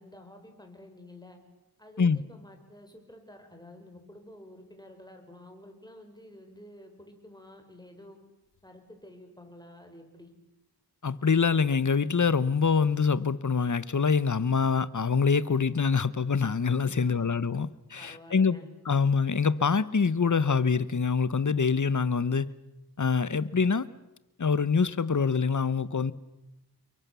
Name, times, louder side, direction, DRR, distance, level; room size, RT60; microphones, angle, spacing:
voice 1, 0.0-1.4 1.8-8.2 8.6-10.3 16.9-17.3 18.0-18.7, left 1 dB, 10° left, 5.3 m, -50 dB
voice 2, 11.0-18.6 18.8-22.5 23.0-23.9 24.4-26.1, left 5 dB, 50° left, 1.0 m, -25 dB
30.0 x 23.0 x 7.0 m
wide cardioid pair, 75°, 38 cm